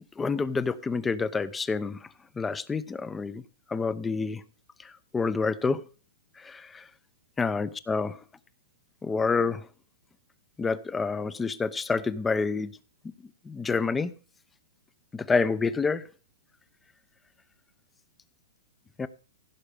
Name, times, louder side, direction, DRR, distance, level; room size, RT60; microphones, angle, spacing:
voice 1, 0.2-2.0 2.4-3.4 3.7-4.4 4.8-5.8 6.4-6.8 7.4-8.2 9.0-9.7 10.6-12.7 13.4-14.1 15.1-16.0 19.0-19.1, left 4 dB, 10° left, 0.8 m, -28 dB
16.0 x 6.6 x 5.2 m
hypercardioid pair, 145°, 0 cm